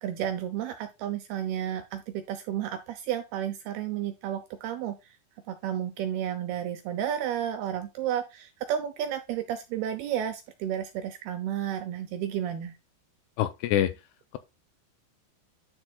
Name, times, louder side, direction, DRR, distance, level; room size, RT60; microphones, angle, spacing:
voice 1, 0.0-5.2 5.5-12.8, right 10 dB, 80° right, 2.3 m, -32 dB
voice 2, 13.4-13.9, left 12 dB, 85° left, 2.5 m, -25 dB
10.0 x 6.4 x 2.3 m
omnidirectional pair, 5.2 m